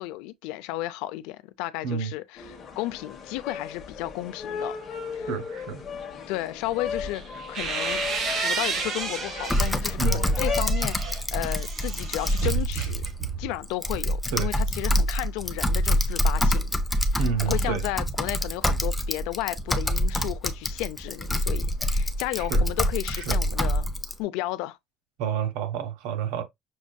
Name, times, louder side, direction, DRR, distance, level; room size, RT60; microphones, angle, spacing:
voice 1, 0.0-4.8 5.1-5.3 6.3-7.2 7.5-8.0 8.4-13.0 13.4-16.7 17.1-23.9 24.2-24.8, left 16 dB, 80° left, 0.4 m, -33 dB
sound 1, 2.4-10.6, left 6 dB, 30° left, 1.0 m, -36 dB
voice 2, 5.3-5.8 10.0-10.2 14.3-14.5 17.2-17.8 22.4-22.6 23.1-23.3 25.2-26.4, right 7 dB, 80° right, 1.0 m, -29 dB
sound 2, 7.1-9.8 10.3-13.6, right 5 dB, 40° right, 0.8 m, -31 dB
Typing, 9.5-24.1, equal, 5° left, 0.4 m, -26 dB
6.1 x 2.6 x 2.2 m
cardioid pair, 155°, 0 cm